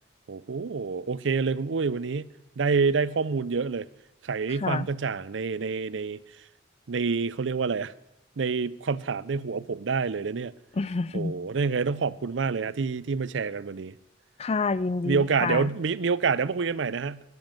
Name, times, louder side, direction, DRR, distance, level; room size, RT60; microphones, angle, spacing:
voice 1, 0.3-2.3 2.6-3.9 4.2-6.2 6.9-7.9 8.4-10.5 11.1-14.0 15.0-17.2, right 5 dB, 85° right, 0.5 m, -27 dB
voice 2, 10.8-11.3 14.4-15.7, left 4 dB, 35° left, 0.4 m, -28 dB
12.5 x 11.0 x 7.7 m
head